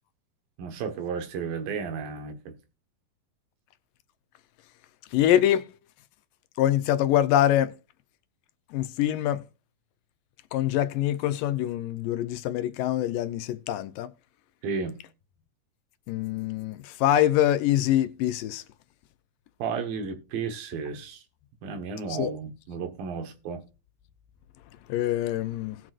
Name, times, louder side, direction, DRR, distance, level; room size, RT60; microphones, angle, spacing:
voice 1, 0.6-2.6 14.6-15.0 19.6-21.2 21.6-23.6, right 5 dB, 85° right, 3.1 m, -33 dB
voice 2, 5.1-5.7 6.6-7.7 8.7-9.4 10.5-14.1 16.1-18.6 22.1-22.3 24.9-25.8, left 12 dB, 80° left, 2.3 m, -24 dB
18.0 x 6.2 x 2.5 m
omnidirectional pair, 4.0 m